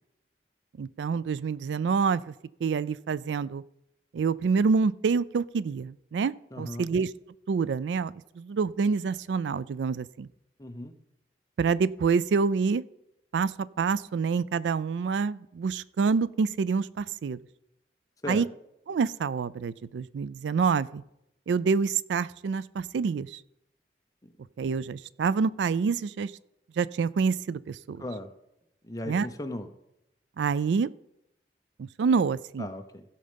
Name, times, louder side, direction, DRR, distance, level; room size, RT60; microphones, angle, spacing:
voice 1, 0.8-2.3 2.6-3.6 4.1-7.1 7.5-10.3 11.6-12.8 13.3-17.4 18.3-18.5 18.9-21.0 21.5-23.4 24.6-26.3 26.8-28.0 29.1-29.3 30.4-30.9 31.8-32.7, right 5 dB, 85° right, 19 dB, 0.4 m, -27 dB
voice 2, 6.5-6.9 10.6-10.9 18.2-18.5 28.0-28.3 28.9-29.7 32.6-33.0, left 1 dB, 20° left, 6 dB, 0.8 m, -36 dB
16.0 x 5.4 x 5.2 m, 0.84 s
head